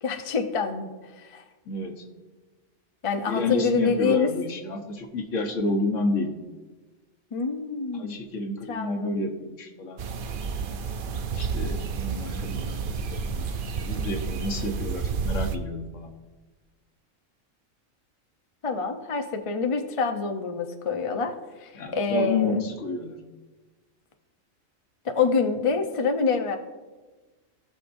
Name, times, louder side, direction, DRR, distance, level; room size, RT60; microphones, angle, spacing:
voice 1, 0.0-1.4 3.0-4.3 7.3-8.2 8.7-9.3 18.6-21.4 21.6-22.6 25.0-26.6, left 5 dB, 35° left, 5 dB, 0.5 m, -26 dB
voice 2, 1.7-2.0 3.2-6.3 7.9-10.1 11.3-13.5 13.8-16.1 21.7-23.2, left 3 dB, 70° left, 4 dB, 1.4 m, -30 dB
sound 1, 10.0-15.6, right 5 dB, 55° right, 0.6 m, -30 dB
17.5 x 6.6 x 2.6 m, 1.3 s
omnidirectional pair, 1.4 m